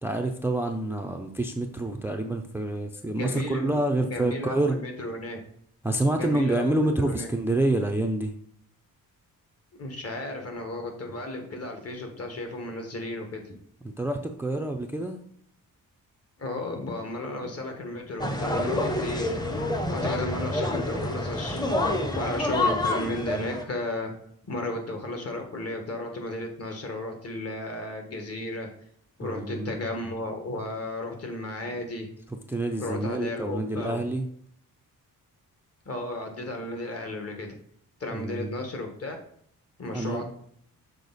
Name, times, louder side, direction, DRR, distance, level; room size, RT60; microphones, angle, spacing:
voice 1, 0.0-4.8 5.8-8.3 13.8-15.2 29.2-29.9 32.5-34.3 38.1-38.6 39.9-40.3, right 1 dB, 5° right, 5 dB, 0.5 m, -27 dB
voice 2, 3.1-3.8 4.0-5.4 6.2-7.3 9.8-13.4 16.4-24.1 24.5-28.7 29.2-32.1 32.8-34.0 35.8-37.6 38.0-39.1 39.8-40.3, left 2 dB, 45° left, 3 dB, 1.6 m, -34 dB
sound 1, 18.2-23.6, left 1 dB, 10° left, 0.8 m, -28 dB
6.7 x 4.5 x 4.0 m, 0.66 s
cardioid pair, 120°, 35 cm